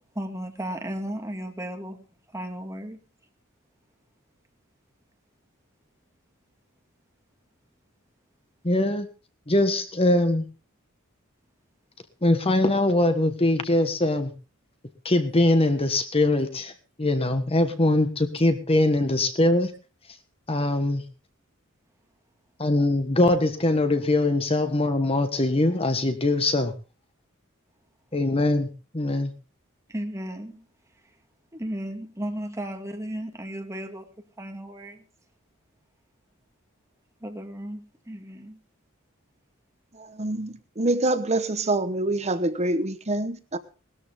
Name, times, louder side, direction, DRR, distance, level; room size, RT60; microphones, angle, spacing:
voice 1, 0.1-2.0 2.3-3.0 29.9-30.7 31.5-34.1 34.4-35.1 37.2-38.6, right 1 dB, 15° right, 4 dB, 2.2 m, -34 dB
voice 2, 8.6-9.1 9.5-10.4 12.2-14.3 15.0-16.7 17.0-19.7 20.5-21.0 22.6-26.7 28.1-28.7 28.9-29.3, left 1 dB, 25° left, 9 dB, 1.4 m, -22 dB
voice 3, 39.9-43.6, right 2 dB, 30° right, 11 dB, 1.0 m, -26 dB
19.5 x 13.5 x 3.6 m, 0.34 s
head